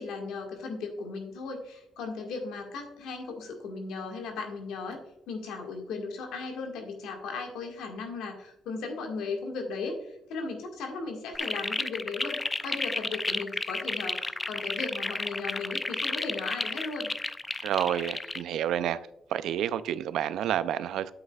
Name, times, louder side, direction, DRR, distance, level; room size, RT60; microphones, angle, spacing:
voice 1, 0.0-5.0 5.3-17.1, left 4 dB, 90° left, 1.8 m, -36 dB
sound 1, 11.3-18.4, left 2 dB, 20° left, 0.4 m, -32 dB
voice 2, 17.6-19.0 19.3-21.1, right 10 dB, 80° right, 0.4 m, -29 dB
9.4 x 7.9 x 2.4 m
cardioid pair, 90°, 0 cm